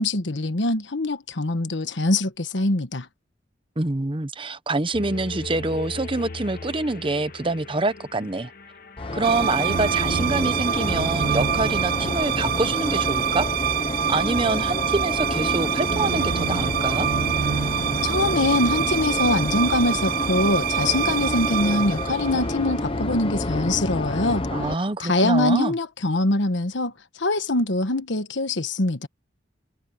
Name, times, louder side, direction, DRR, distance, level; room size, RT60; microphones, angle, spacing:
voice 1, 0.0-3.1 18.0-24.5 25.0-26.9 27.2-29.1, left 2 dB, 85° left, 1.3 m, -23 dB
voice 2, 3.8-8.5 9.1-13.5 14.1-17.1 24.5-25.7, right 2 dB, 30° right, 0.9 m, -26 dB
sound 1, 4.9-10.0, left 3 dB, 50° left, 1.6 m, -39 dB
sound 2, 9.0-24.7, left 2 dB, 30° left, 0.9 m, -29 dB
sound 3, 9.2-22.9, right 10 dB, 50° right, 0.3 m, -26 dB
head